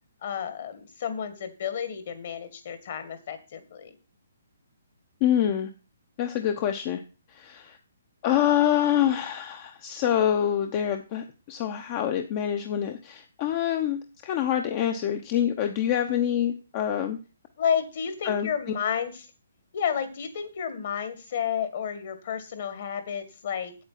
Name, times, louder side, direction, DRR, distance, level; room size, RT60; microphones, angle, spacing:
voice 1, 0.2-3.9 17.6-19.2 19.7-23.8, left 8 dB, 50° left, 10 dB, 2.1 m, -31 dB
voice 2, 5.2-5.7 6.2-7.0 7.3-7.8 8.2-17.2 18.2-18.5, left 10 dB, 30° left, 6 dB, 0.9 m, -26 dB
8.6 x 8.1 x 5.9 m, 0.33 s
hypercardioid pair, 160°, 0 cm